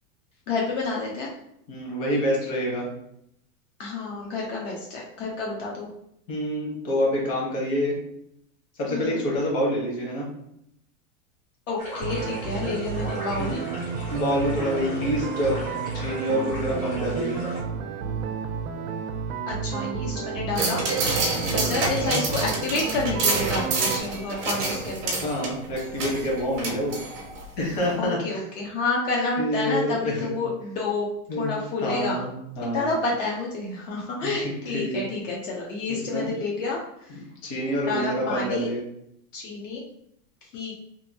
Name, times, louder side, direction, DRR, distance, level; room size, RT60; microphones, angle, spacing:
voice 1, 0.5-1.3 3.8-5.9 8.9-9.2 11.7-13.6 19.5-20.8 21.3-25.2 28.0-31.1 31.4-32.2 32.7-37.2 37.8-38.7 39.3-39.8 40.4-40.7, left 3 dB, 65° left, -2 dB, 0.8 m, -29 dB
voice 2, 1.7-2.9 6.3-8.0 8.8-10.3 13.4-13.7 14.1-15.6 15.9-17.4 21.4-21.7 25.2-27.0 27.6-28.4 29.4-30.3 31.3-31.5 31.8-32.9 34.2-34.4 34.7-35.1 35.9-36.3 37.1-38.8, equal, 35° left, -3 dB, 1.0 m, -27 dB
sound 1, 11.8-17.6, equal, 20° left, 0.6 m, -38 dB
sound 2, 12.0-24.0, right 5 dB, 80° right, 0.6 m, -31 dB
sound 3, 20.6-27.4 27.8-27.9, right 3 dB, 25° right, 0.4 m, -28 dB
2.8 x 2.6 x 2.7 m, 0.75 s
supercardioid pair, 160°, 41 cm